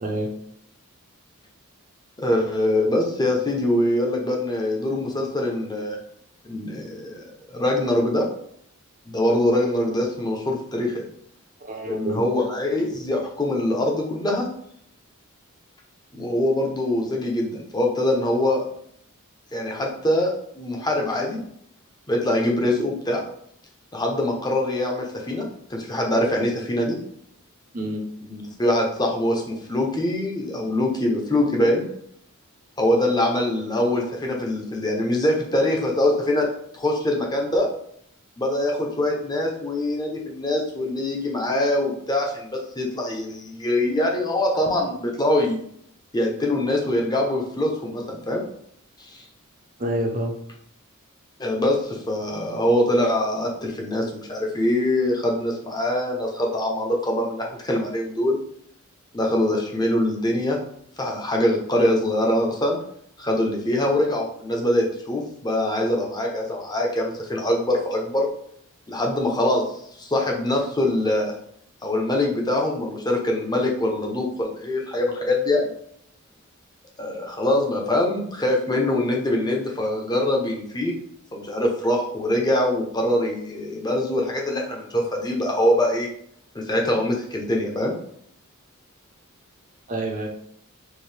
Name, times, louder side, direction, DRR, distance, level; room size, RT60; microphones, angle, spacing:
voice 1, 2.2-6.0 6.4-8.3 9.1-11.0 11.8-14.5 16.1-18.7 19.5-21.4 22.1-23.2 23.9-27.0 28.2-31.9 32.8-36.5 36.7-37.7 38.4-45.6 46.1-48.4 49.1-49.2 51.4-58.4 59.1-60.6 61.0-62.8 63.2-68.3 68.9-69.6 70.0-71.3 71.8-75.7 77.0-80.9 81.3-86.1 86.5-87.9, left 1 dB, 20° left, 0 dB, 0.7 m, -23 dB
voice 2, 11.6-12.2 27.7-28.0 49.8-50.3 89.9-90.3, right 1 dB, 35° right, 0 dB, 0.6 m, -27 dB
4.5 x 2.6 x 3.3 m, 0.69 s
head